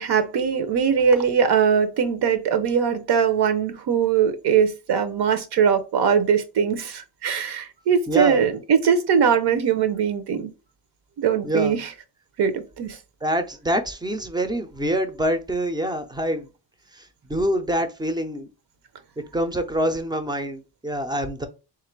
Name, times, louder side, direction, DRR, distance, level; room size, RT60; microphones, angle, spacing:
voice 1, 0.0-10.5 11.2-11.9 12.4-13.0, right 7 dB, 70° right, 0.7 m, -21 dB
voice 2, 8.1-8.5 11.4-11.8 13.2-16.5 16.9-18.5 19.3-21.5, equal, 10° right, 0.3 m, -26 dB
3.5 x 2.4 x 4.4 m
wide cardioid pair, 175°, 41 cm